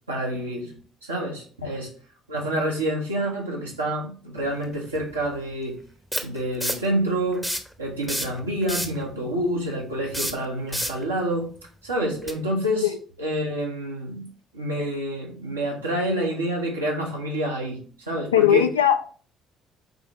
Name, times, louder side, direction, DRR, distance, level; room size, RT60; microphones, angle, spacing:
voice 1, 0.1-0.7 1.0-1.9 2.3-5.8 6.2-11.5 11.8-12.9 13.2-18.6, right 1 dB, 85° right, 0.8 m, -28 dB
sound 1, 4.6-4.7 6.1-6.9 7.3-7.7 8.0-9.0 10.1-11.0 12.2-12.3, equal, ahead, 0.7 m, -28 dB
voice 2, 18.3-19.1, left 10 dB, 80° left, 0.3 m, -19 dB
5.9 x 2.1 x 3.0 m
figure-of-eight pair, 50°, 0 cm